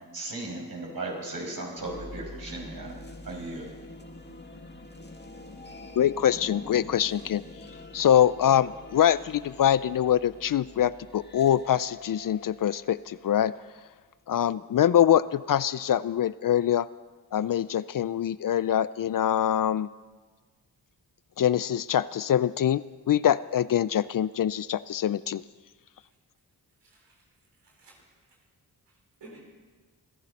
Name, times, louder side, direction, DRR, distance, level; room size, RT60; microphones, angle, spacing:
voice 1, 0.0-3.7, right 2 dB, 55° right, -2 dB, 5.8 m, -37 dB
sound 1, 1.7-13.6, left 2 dB, 25° left, 2.2 m, -45 dB
voice 2, 6.0-7.4 7.9-13.5 14.3-16.9 17.3-19.9 21.4-22.8 23.1-25.4, left 10 dB, 55° left, 18 dB, 0.5 m, -24 dB
voice 3, 26.8-28.4 28.9-29.4, right 2 dB, 85° right, -1 dB, 3.4 m, -55 dB
26.5 x 11.0 x 4.1 m, 1.4 s
cardioid pair, 45°, 41 cm